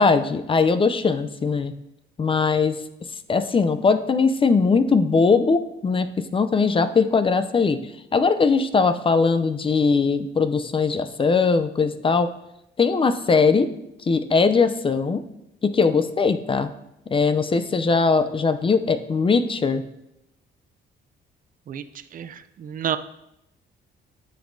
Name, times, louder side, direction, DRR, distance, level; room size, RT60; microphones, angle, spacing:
voice 1, 0.0-1.7 2.2-2.8 3.3-6.1 6.3-7.8 8.1-12.3 12.8-13.7 14.1-15.2 15.6-16.7 17.1-19.8, left 4 dB, 25° left, 11 dB, 0.4 m, -20 dB
voice 2, 22.1-23.0, right 9 dB, 45° right, 11 dB, 0.4 m, -29 dB
8.8 x 5.4 x 2.6 m, 0.83 s
cardioid pair, 90°, 20 cm